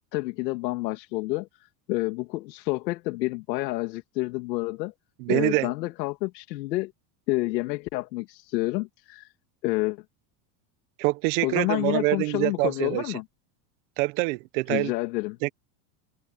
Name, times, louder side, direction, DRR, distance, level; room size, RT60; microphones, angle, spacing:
voice 1, 0.1-1.5 1.9-4.9 5.3-6.9 7.3-9.3 9.6-10.0 11.4-13.2 14.7-15.4, left 20 dB, 80° left, 2.6 m, -29 dB
voice 2, 5.2-5.7 11.0-13.0 14.0-14.9 15.4-15.5, right 24 dB, 55° right, 1.2 m, -25 dB
open air
supercardioid pair, 150°, 50 cm